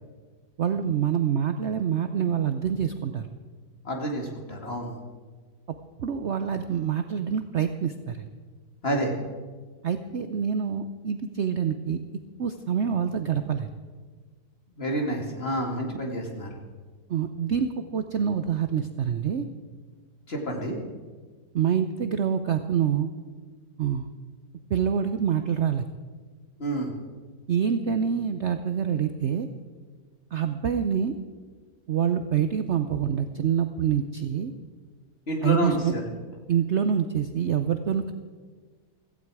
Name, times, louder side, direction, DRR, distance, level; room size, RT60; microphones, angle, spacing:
voice 1, 0.6-3.3 6.0-8.3 9.8-12.0 12.4-13.7 15.9-16.0 17.1-19.5 21.5-23.1 23.8-24.1 24.7-25.8 27.5-29.5 30.3-31.1 31.9-34.5 35.4-35.9 36.5-38.1, right 8 dB, 60° right, 8 dB, 0.8 m, -26 dB
voice 2, 3.8-4.9 8.8-9.1 14.8-16.5 20.3-20.8 26.6-26.9 35.3-36.0, right 1 dB, 35° left, 1 dB, 2.3 m, -28 dB
16.5 x 15.0 x 4.8 m, 1.5 s
omnidirectional pair, 1.8 m